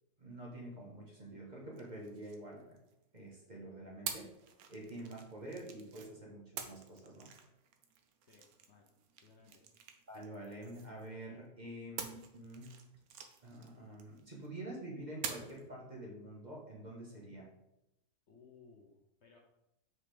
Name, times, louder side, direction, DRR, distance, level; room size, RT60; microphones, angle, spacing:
voice 1, 0.2-2.8 3.1-4.3 4.7-7.3 10.1-12.8 13.4-17.5, right 1 dB, 30° right, -3 dB, 1.5 m, -47 dB
sound 1, 1.7-3.2 4.1-6.1 6.6-11.2 12.0-14.5 15.2-15.7, right 7 dB, 75° right, 1.2 m, -48 dB
voice 2, 8.2-8.9 9.2-9.6 18.3-18.9 19.2-19.4, left 5 dB, 50° left, 0 dB, 1.1 m, -61 dB
5.6 x 4.8 x 4.9 m, 0.87 s
omnidirectional pair, 1.6 m